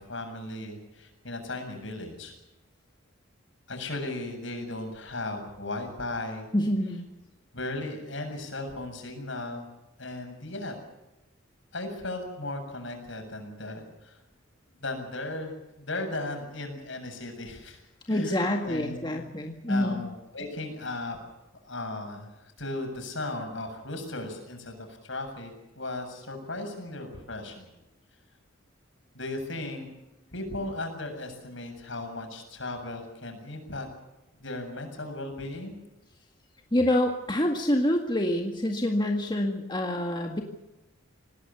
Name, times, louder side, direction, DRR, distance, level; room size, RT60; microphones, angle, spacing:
voice 1, 0.0-2.3 3.7-6.5 7.5-9.7 10.0-10.7 11.7-14.2 14.8-17.8 18.1-19.2 19.7-21.2 21.6-27.7 29.1-29.9 30.3-33.9 34.4-35.7, left 2 dB, 65° left, 4 dB, 7.4 m, -36 dB
voice 2, 6.5-7.0 18.1-20.0 36.7-40.4, left 1 dB, 20° left, 2 dB, 1.9 m, -26 dB
26.5 x 19.0 x 7.0 m, 0.99 s
head